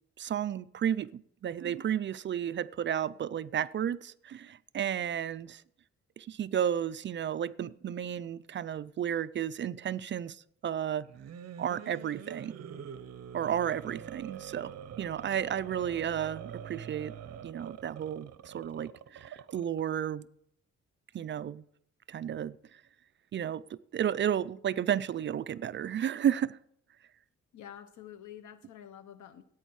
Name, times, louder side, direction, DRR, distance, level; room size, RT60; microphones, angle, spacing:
voice 1, 0.2-5.6 6.2-11.1 11.6-12.6 13.3-17.1 17.4-20.3 21.1-21.6 22.1-22.6 23.3-26.6, right 9 dB, 40° right, 0.4 m, -32 dB
sound 1, 11.0-19.8, right 8 dB, 60° right, 0.9 m, -45 dB
voice 2, 27.5-29.4, left 10 dB, 90° left, 1.1 m, -48 dB
14.0 x 9.0 x 4.7 m
cardioid pair, 135°, 29 cm